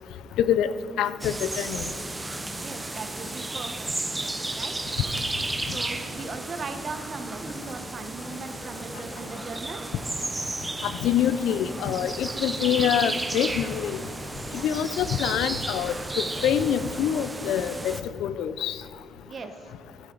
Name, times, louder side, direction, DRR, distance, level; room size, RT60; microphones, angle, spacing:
voice 1, 0.4-0.7 1.0-1.9 10.8-14.0 14.5-17.9 18.2-18.8, left 9 dB, 85° left, 14 dB, 0.5 m, -25 dB
sound 1, 1.2-18.0, right 2 dB, 15° right, 0.9 m, -33 dB
voice 2, 2.6-3.9 4.5-4.8 5.6-9.8 14.5-14.7 19.3-19.7, right 4 dB, 45° right, 7 dB, 1.3 m, -38 dB
15.0 x 10.5 x 4.0 m, 2.4 s
cardioid pair, 90°, 0 cm